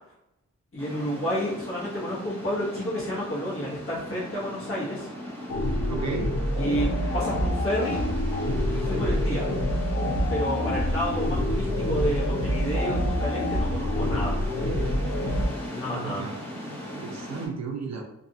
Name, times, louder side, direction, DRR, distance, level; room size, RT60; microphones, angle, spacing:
voice 1, 0.7-5.1 6.6-8.0 8.7-9.4 10.3-14.4 15.7-16.2, equal, 45° left, -6 dB, 1.1 m, -30 dB
sound 1, 0.8-17.5, equal, 5° left, 0.7 m, -38 dB
sound 2, 5.5-15.5, left 1 dB, 75° left, 0.6 m, -26 dB
voice 2, 5.9-6.3 15.9-16.4 16.7-18.0, right 5 dB, 60° right, 2 dB, 0.5 m, -34 dB
2.6 x 2.4 x 2.6 m, 0.84 s
wide cardioid pair, 150°, 30 cm